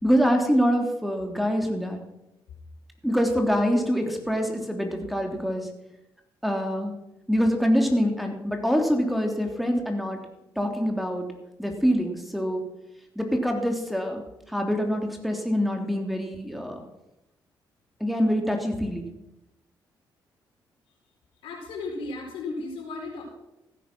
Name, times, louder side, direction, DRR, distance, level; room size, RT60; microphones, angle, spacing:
voice 1, 0.0-2.0 3.0-5.7 6.4-6.9 7.3-10.2 10.5-11.3 11.6-12.6 13.1-14.2 14.5-16.8 18.0-19.1, equal, ahead, 3 dB, 3.1 m, -25 dB
voice 2, 21.4-23.2, left 3 dB, 90° left, 0 dB, 4.2 m, -35 dB
15.5 x 9.4 x 6.0 m, 0.91 s
supercardioid pair, 60°, 9 cm